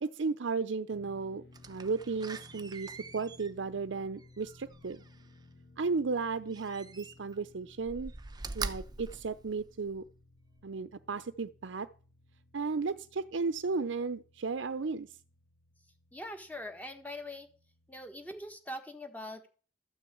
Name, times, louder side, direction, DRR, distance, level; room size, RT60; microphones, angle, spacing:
voice 1, 0.0-5.0 5.8-8.1 8.5-10.0 10.6-11.9 12.5-15.1, right 4 dB, 80° right, 12 dB, 0.6 m, -34 dB
sound 1, 0.9-18.6, left 2 dB, 60° left, 1.7 m, -59 dB
Slam, 1.5-5.4 6.5-7.4 7.8-10.1 10.6-10.7, right 4 dB, 20° right, 0.7 m, -43 dB
voice 2, 16.1-17.5 17.9-19.5, left 1 dB, 10° left, 6 dB, 1.4 m, -42 dB
13.0 x 6.2 x 8.5 m, 0.39 s
head